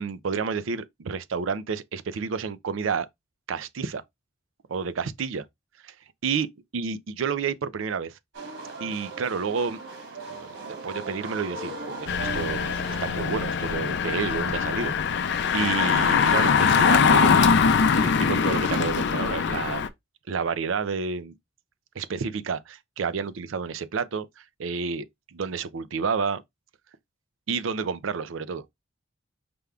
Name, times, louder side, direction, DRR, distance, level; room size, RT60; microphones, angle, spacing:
voice 1, 0.0-3.1 3.5-4.0 4.7-5.4 5.8-5.9 6.2-6.5 6.7-8.2 8.8-9.8 10.3-12.1 12.3-15.3 15.5-17.5 17.9-19.9 20.3-21.3 22.0-26.4 27.5-28.7, right 5 dB, 85° right, 0.5 m, -30 dB
sound 1, 8.3-13.8, right 3 dB, 70° right, 1.8 m, -38 dB
Engine, 12.1-19.9, left 6 dB, 65° left, 0.5 m, -22 dB
5.1 x 2.3 x 3.3 m
head